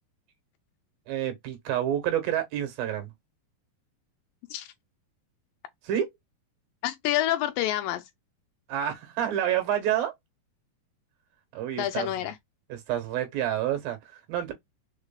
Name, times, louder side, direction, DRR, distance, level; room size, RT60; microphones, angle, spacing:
voice 1, 1.1-3.1 5.8-6.1 8.7-10.1 11.5-12.1 12.7-14.5, right 10 dB, 75° right, 3.0 m, -28 dB
voice 2, 6.8-8.0 11.8-12.4, left 13 dB, 80° left, 2.2 m, -28 dB
4.8 x 4.7 x 2.2 m
omnidirectional pair, 4.3 m